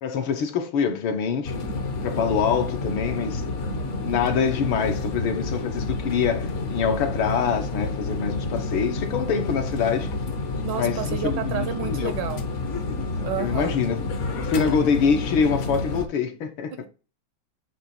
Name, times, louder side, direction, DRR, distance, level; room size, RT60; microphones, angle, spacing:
voice 1, 0.0-1.6 2.0-3.4 4.0-10.2 10.8-12.1 13.4-14.1 14.4-16.7, left 6 dB, 75° left, 1.7 m, -25 dB
sound 1, 1.4-16.1, left 3 dB, 50° left, 0.9 m, -29 dB
voice 2, 10.6-12.4 13.2-13.8, right 9 dB, 70° right, 1.2 m, -30 dB
7.8 x 3.0 x 4.2 m
omnidirectional pair, 2.4 m